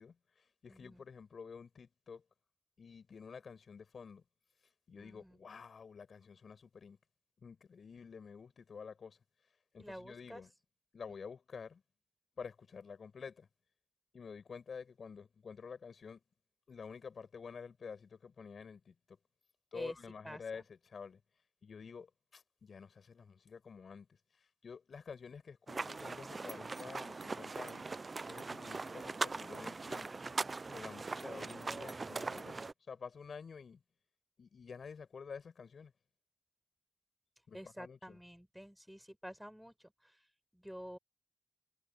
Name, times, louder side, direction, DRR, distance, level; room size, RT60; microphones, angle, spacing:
voice 1, 0.0-2.2 2.8-4.2 4.9-7.0 7.4-9.2 9.7-10.5 10.9-11.8 12.4-13.5 14.1-16.2 16.7-19.2 19.7-21.2 21.6-27.9 28.3-30.2 30.7-33.8 34.4-35.9 37.5-38.2, left 5 dB, 70° left, 6.5 m, -50 dB
voice 2, 0.7-1.0 5.0-5.4 9.8-10.4 19.7-20.0 20.2-20.6 37.5-40.3 40.5-41.0, equal, ahead, 6.4 m, -49 dB
sound 1, 25.7-32.7, right 3 dB, 45° right, 0.5 m, -41 dB
cardioid pair, 70°, 0 cm